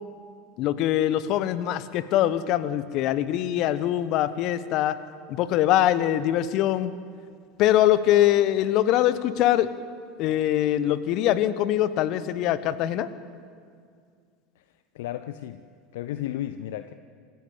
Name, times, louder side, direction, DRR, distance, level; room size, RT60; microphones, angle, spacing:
voice 1, 0.6-5.0 5.3-6.9 7.6-9.7 10.2-13.1, left 12 dB, 50° left, 14 dB, 1.2 m, -23 dB
voice 2, 14.9-15.7 15.9-16.9, left 12 dB, 65° left, 11 dB, 0.7 m, -33 dB
26.5 x 15.5 x 8.5 m, 2.2 s
figure-of-eight pair, 80°, 0 cm